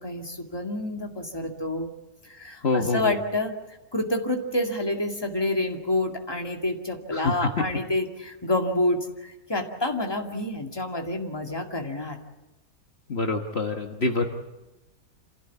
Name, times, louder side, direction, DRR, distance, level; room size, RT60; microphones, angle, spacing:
voice 1, 0.0-1.9 2.2-12.2, left 1 dB, 15° left, 3 dB, 2.3 m, -28 dB
voice 2, 2.6-3.2 7.1-7.6 13.1-14.3, left 3 dB, 50° left, 3 dB, 1.6 m, -26 dB
27.5 x 16.0 x 8.5 m, 1.1 s
omnidirectional pair, 1.5 m